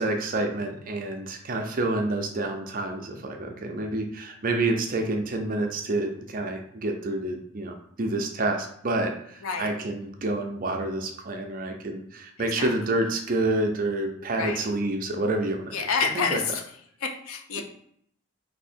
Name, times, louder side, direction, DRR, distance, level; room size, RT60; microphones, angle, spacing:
voice 1, 0.0-15.8 16.1-16.4 17.5-17.6, right 2 dB, 40° right, 4 dB, 0.5 m, -28 dB
voice 2, 15.7-16.6 17.0-17.6, left 5 dB, 75° left, 4 dB, 0.6 m, -28 dB
3.3 x 2.7 x 4.3 m, 0.68 s
head